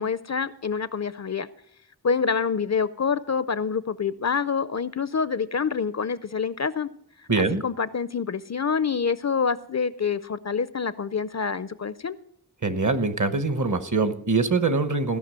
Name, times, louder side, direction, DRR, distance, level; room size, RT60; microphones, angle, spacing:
voice 1, 0.0-1.5 2.0-6.9 7.4-12.2, left 6 dB, 45° left, 16 dB, 0.5 m, -26 dB
voice 2, 7.3-7.6 12.6-15.2, right 3 dB, 50° right, 12 dB, 1.0 m, -23 dB
16.0 x 5.7 x 7.5 m, 0.71 s
wide cardioid pair, 70°, 38 cm